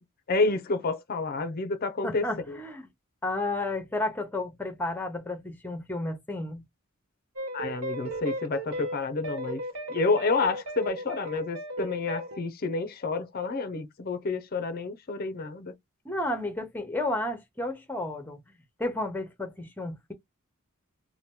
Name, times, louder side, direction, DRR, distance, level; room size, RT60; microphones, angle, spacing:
voice 1, 0.3-2.6 7.5-9.6 9.9-15.7, left 3 dB, 45° left, 0.5 m, -29 dB
voice 2, 2.0-2.9 3.2-6.6 16.0-18.4 18.8-20.1, left 2 dB, 10° left, 0.8 m, -32 dB
sound 1, 7.4-12.4, right 1 dB, 75° right, 1.0 m, -35 dB
2.9 x 2.1 x 3.5 m
head